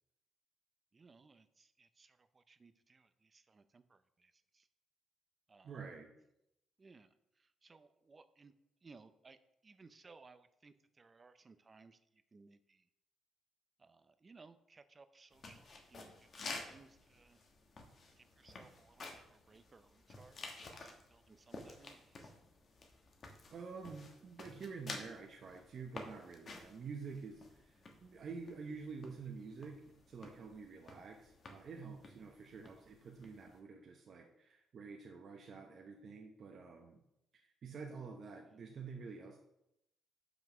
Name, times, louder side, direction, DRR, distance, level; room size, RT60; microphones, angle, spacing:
voice 1, 0.9-4.7 5.5-5.8 6.8-8.5 8.8-9.4 9.6-12.8 13.8-17.4 18.2-22.3 38.4-38.6, right 4 dB, 30° right, 12 dB, 0.5 m, -62 dB
voice 2, 5.6-6.1 23.5-37.0 37.3-39.4, right 5 dB, 55° right, 2 dB, 0.9 m, -49 dB
sound 1, 15.3-33.6, left 3 dB, 50° left, 1.2 m, -52 dB
6.0 x 5.2 x 6.0 m, 0.82 s
cardioid pair, 90°, 0 cm